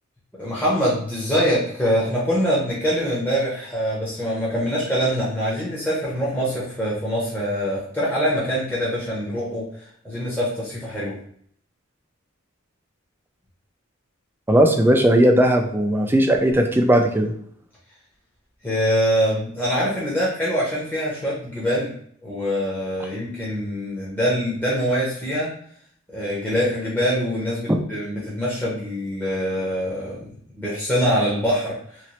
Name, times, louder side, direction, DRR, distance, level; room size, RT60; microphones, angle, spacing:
voice 1, 0.4-11.1 18.6-21.9 22.2-25.5 26.1-30.3 30.6-32.0, equal, 10° left, -8 dB, 0.7 m, -24 dB
voice 2, 14.5-17.3 27.7-27.8, right 1 dB, 10° right, 3 dB, 0.3 m, -17 dB
3.0 x 2.9 x 2.9 m, 0.63 s
head